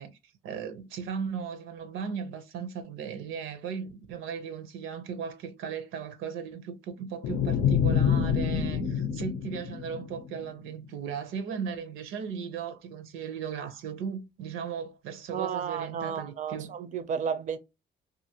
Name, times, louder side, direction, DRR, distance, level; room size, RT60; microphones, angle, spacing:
voice 1, 0.0-16.7, right 6 dB, 85° right, 0.6 m, -37 dB
sound 1, 7.2-10.5, left 7 dB, 85° left, 0.5 m, -27 dB
voice 2, 15.3-17.6, right 7 dB, 40° right, 0.4 m, -32 dB
2.7 x 2.4 x 2.8 m
cardioid pair, 90°, 20 cm